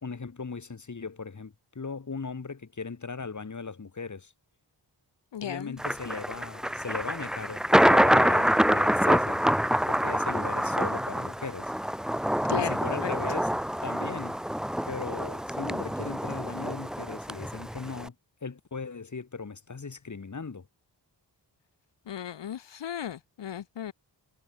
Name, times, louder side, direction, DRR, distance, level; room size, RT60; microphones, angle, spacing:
voice 1, 0.0-4.3 5.4-9.4 9.8-11.7 12.5-13.5 13.8-14.4 14.9-18.1 18.4-20.7, left 4 dB, 40° left, 2.3 m, -38 dB
voice 2, 5.3-5.8 12.5-13.1 22.1-23.9, left 9 dB, 75° left, 0.9 m, -35 dB
Thunder, 5.8-18.1, equal, ahead, 0.8 m, -26 dB
wide cardioid pair, 80°, 43 cm